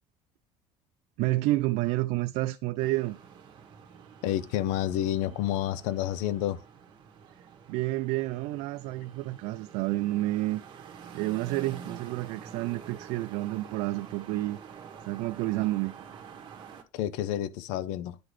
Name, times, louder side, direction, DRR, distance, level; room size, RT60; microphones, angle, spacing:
voice 1, 1.2-3.2 7.7-10.6 11.1-14.6 15.0-15.9, right 18 dB, 70° right, 0.4 m, -29 dB
sound 1, 2.8-16.8, right 7 dB, 40° right, 1.3 m, -48 dB
voice 2, 4.2-6.6 16.9-18.2, left 12 dB, 80° left, 0.5 m, -29 dB
10.0 x 3.9 x 3.1 m
cardioid pair, 150°, 12 cm